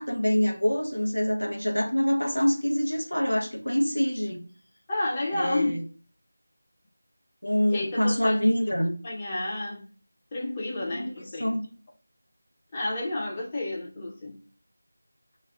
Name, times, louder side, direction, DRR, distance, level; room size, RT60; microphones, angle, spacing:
voice 1, 0.0-4.4 5.3-5.8 7.4-8.9 10.9-11.6, equal, 85° left, 0.9 m, -25 dB
voice 2, 4.9-5.7 7.7-8.5 9.0-9.9 10.3-11.6 12.7-14.4, left 2 dB, 20° left, 0.5 m, -30 dB
2.3 x 2.1 x 3.5 m
figure-of-eight pair, 165°, 0 cm